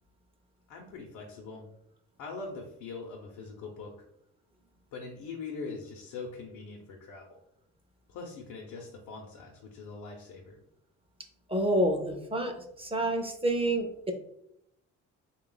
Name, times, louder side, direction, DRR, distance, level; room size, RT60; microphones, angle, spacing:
voice 1, 0.7-1.7 2.2-3.9 4.9-7.4 8.1-10.6, left 4 dB, 90° left, 0 dB, 0.7 m, -42 dB
voice 2, 11.5-14.1, right 1 dB, 20° right, 4 dB, 0.5 m, -28 dB
3.3 x 2.3 x 3.8 m, 0.77 s
cardioid pair, 90°, 30 cm